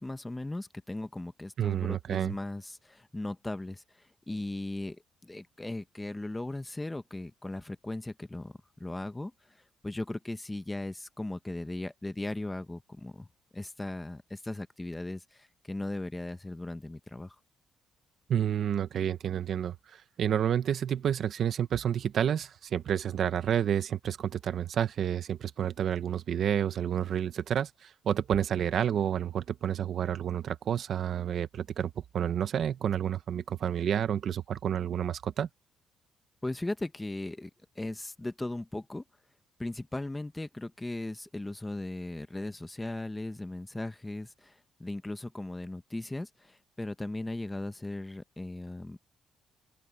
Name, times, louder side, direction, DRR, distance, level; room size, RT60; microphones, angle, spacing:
voice 1, 0.0-8.5 8.8-9.3 9.8-13.3 13.5-17.4 36.4-37.5 37.8-39.0 39.6-49.1, left 2 dB, 10° left, 0.9 m, -37 dB
voice 2, 1.6-2.3 18.3-19.7 20.2-35.5, right 9 dB, 55° right, 1.1 m, -29 dB
open air
cardioid pair, 145°, 0 cm